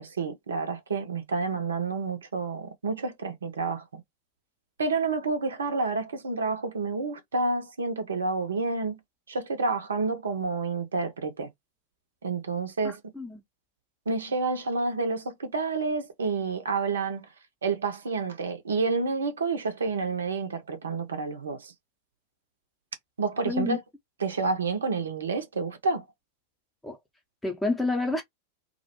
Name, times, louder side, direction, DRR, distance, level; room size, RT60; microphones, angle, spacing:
voice 1, 0.0-4.0 4.8-9.0 9.3-11.5 12.2-13.0 14.1-17.2 17.6-21.7 23.2-23.8 24.2-26.0, right 4 dB, 70° right, 0.5 m, -29 dB
voice 2, 12.8-13.4 23.5-23.8 26.8-27.0 27.4-28.2, left 3 dB, 5° left, 0.6 m, -29 dB
2.4 x 2.1 x 2.7 m
figure-of-eight pair, 90°, 0 cm